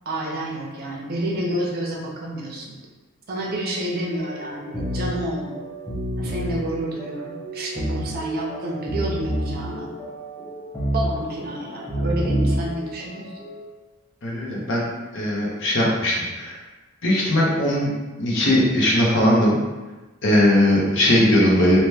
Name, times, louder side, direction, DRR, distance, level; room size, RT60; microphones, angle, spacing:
voice 1, 0.0-2.8 3.3-5.6 6.2-9.9 10.9-13.3, right 1 dB, 45° right, -2 dB, 0.5 m, -29 dB
sound 1, 4.2-13.6, equal, 5° left, 0.6 m, -29 dB
voice 2, 14.2-14.9 15.1-16.5 17.0-17.9 18.2-19.6 20.2-21.8, left 1 dB, 60° left, -4 dB, 0.7 m, -19 dB
2.8 x 2.1 x 3.3 m, 1.2 s
head